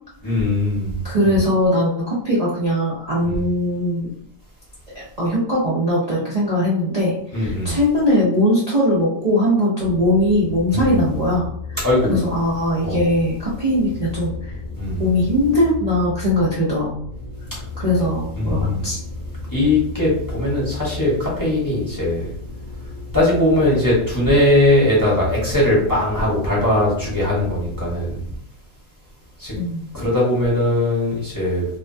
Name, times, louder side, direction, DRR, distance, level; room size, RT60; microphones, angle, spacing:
voice 1, 0.2-1.4 3.3-3.4 7.3-7.8 10.7-10.9 11.8-12.2 12.8-13.1 14.8-15.1 18.4-18.8 19.5-22.3 23.1-28.2 29.4-29.5 29.9-31.7, left 1 dB, 20° left, -6 dB, 0.6 m, -20 dB
voice 2, 1.0-4.1 4.9-11.5 12.1-14.5 15.0-16.9 17.8-19.0 29.5-29.9, left 1 dB, 80° right, -8 dB, 0.3 m, -20 dB
sound 1, 9.8-28.2, left 3 dB, 60° left, 1.0 m, -34 dB
2.8 x 2.2 x 2.6 m, 0.69 s
omnidirectional pair, 1.7 m